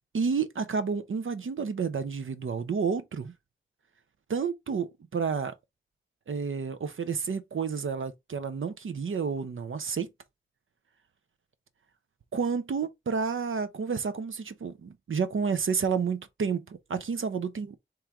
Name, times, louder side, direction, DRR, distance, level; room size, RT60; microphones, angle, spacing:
voice 1, 0.1-3.3 4.3-5.5 6.3-10.1 12.3-17.8, right 5 dB, 90° right, 0.6 m, -30 dB
3.5 x 3.1 x 4.5 m
wide cardioid pair, 60°, 20 cm